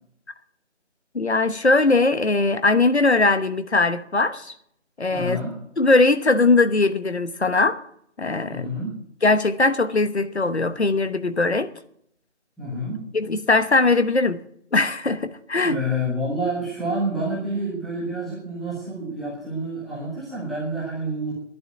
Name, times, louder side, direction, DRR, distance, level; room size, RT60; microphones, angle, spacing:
voice 1, 1.1-4.5 5.0-5.4 5.8-7.8 8.2-8.7 9.2-11.7 13.1-14.4 14.7-15.8, left 3 dB, 65° left, 1.1 m, -20 dB
voice 2, 5.1-5.5 8.5-9.0 12.6-13.0 15.6-21.3, right 1 dB, ahead, 1.1 m, -28 dB
11.0 x 9.9 x 7.9 m
figure-of-eight pair, 175°, 36 cm